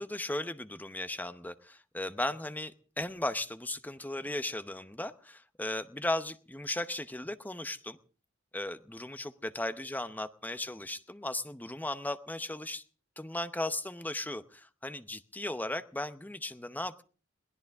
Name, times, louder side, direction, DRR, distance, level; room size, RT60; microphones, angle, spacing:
voice 1, 0.0-8.0 8.5-12.8 13.2-17.0, left 1 dB, 10° left, 11 dB, 0.8 m, -36 dB
22.0 x 17.0 x 3.5 m, 0.39 s
head